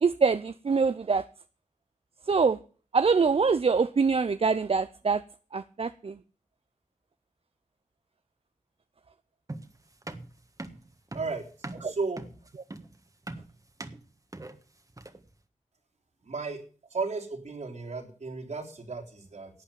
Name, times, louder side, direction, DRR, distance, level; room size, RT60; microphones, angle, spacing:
voice 1, 0.0-1.2 2.3-2.6 2.9-5.2 5.5-6.2 11.8-11.9, right 5 dB, 55° right, 13 dB, 0.6 m, -24 dB
sound 1, 9.5-15.3, right 2 dB, 30° right, 1.5 m, -42 dB
voice 2, 11.8-12.2 16.2-16.6 16.9-19.5, right 4 dB, 75° right, 0 dB, 3.9 m, -34 dB
12.0 x 8.3 x 9.0 m, 0.40 s
cardioid pair, 60°, 12 cm